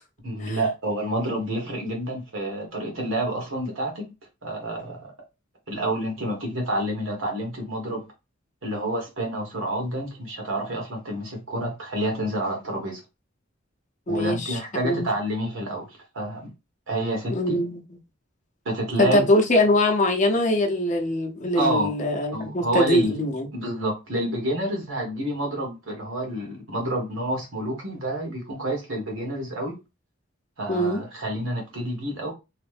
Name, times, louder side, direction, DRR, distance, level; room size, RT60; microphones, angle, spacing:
voice 1, 0.2-4.0 4.4-5.1 5.7-8.0 8.6-13.0 14.1-16.5 16.9-17.6 18.6-19.2 21.5-21.9 22.3-23.2 23.5-29.7 30.6-32.3, right 1 dB, 85° right, 1.3 m, -28 dB
voice 2, 14.1-15.1 17.3-17.8 19.0-23.5 30.7-31.0, left 1 dB, 40° left, 0.6 m, -22 dB
3.1 x 2.0 x 3.2 m
head